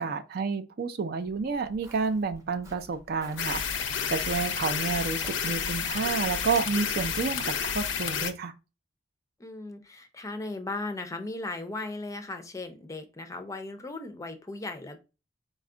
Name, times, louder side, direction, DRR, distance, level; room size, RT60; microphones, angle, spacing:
voice 1, 0.0-8.5, right 5 dB, 55° right, 0.4 m, -30 dB
Walk footsteps, 1.2-7.5, right 1 dB, 15° right, 0.8 m, -49 dB
sound 1, 3.4-8.3, left 7 dB, 85° left, 0.5 m, -30 dB
voice 2, 9.4-15.0, left 2 dB, 15° left, 0.5 m, -37 dB
4.1 x 2.3 x 3.7 m
head